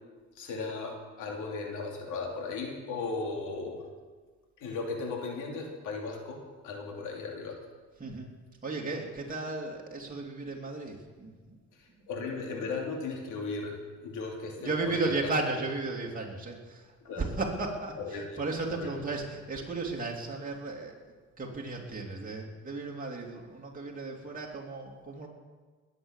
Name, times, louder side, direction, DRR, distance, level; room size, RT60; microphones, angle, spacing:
voice 1, 0.4-3.8 4.6-7.6 12.1-15.3 17.0-17.2 18.0-18.3 18.7-18.9, left 4 dB, 90° left, 1 dB, 2.8 m, -36 dB
voice 2, 8.0-8.4 8.6-11.6 12.0-12.1 14.6-25.3, right 3 dB, 30° right, -1 dB, 2.9 m, -35 dB
20.0 x 8.3 x 7.3 m, 1.4 s
cardioid pair, 90°, 30 cm